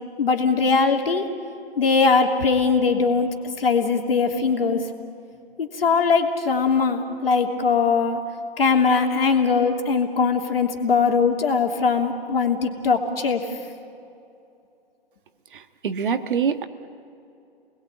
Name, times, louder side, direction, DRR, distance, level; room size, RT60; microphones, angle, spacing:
voice 1, 0.2-1.2 1.8-3.3 3.6-4.8 5.6-8.2 8.6-13.5, left 5 dB, 65° left, 3 dB, 3.1 m, -20 dB
voice 2, 15.8-16.6, right 6 dB, 55° right, 9 dB, 1.4 m, -23 dB
29.0 x 20.5 x 9.0 m, 2.7 s
figure-of-eight pair, 135°, 31 cm